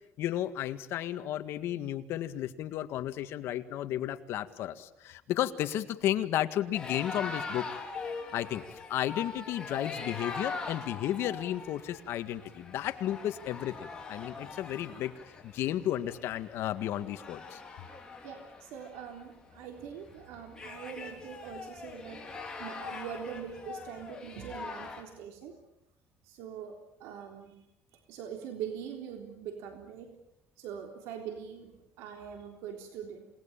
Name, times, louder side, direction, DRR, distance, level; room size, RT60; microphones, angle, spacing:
voice 1, 0.2-7.8 8.3-15.1 15.4-17.6, left 12 dB, 65° left, 9 dB, 1.9 m, -33 dB
sound 1, 6.7-25.0, left 4 dB, 15° left, 4.8 m, -42 dB
voice 2, 18.2-22.2 22.6-25.6 26.2-27.5 28.1-30.2 30.6-33.3, right 8 dB, 90° right, 4 dB, 3.7 m, -43 dB
28.5 x 19.0 x 9.0 m, 0.85 s
cardioid pair, 130°, 4 cm